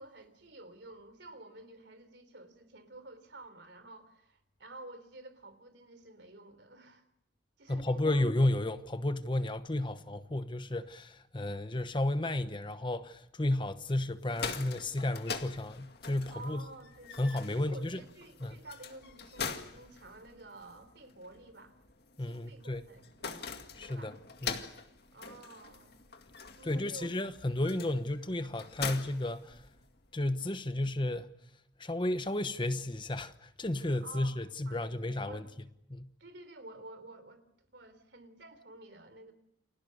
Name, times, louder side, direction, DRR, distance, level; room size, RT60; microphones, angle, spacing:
voice 1, 0.0-7.0 7.6-8.2 16.3-21.8 22.2-23.5 23.9-24.2 25.1-26.0 26.6-27.3 34.0-35.5 36.2-39.3, right 2 dB, 65° right, 3.6 m, -51 dB
voice 2, 7.7-16.6 17.2-18.0 18.4-18.6 22.2-22.8 23.8-24.1 24.4-24.6 26.7-29.6 30.1-31.3 31.8-35.4 35.9-36.1, left 1 dB, 25° left, 1.0 m, -32 dB
sound 1, 14.1-30.1, left 5 dB, 55° left, 2.1 m, -44 dB
29.5 x 21.5 x 6.6 m
head